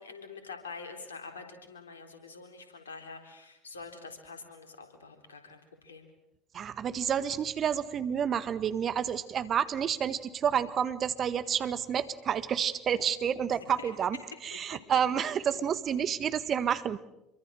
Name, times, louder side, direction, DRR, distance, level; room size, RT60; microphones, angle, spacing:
voice 1, 0.0-6.1 13.8-13.9, left 4 dB, 85° left, 6 dB, 3.8 m, -46 dB
voice 2, 6.5-14.2 14.4-17.0, right 8 dB, 45° right, 13 dB, 1.7 m, -29 dB
27.0 x 23.5 x 6.5 m, 0.87 s
hypercardioid pair, 65°, 0 cm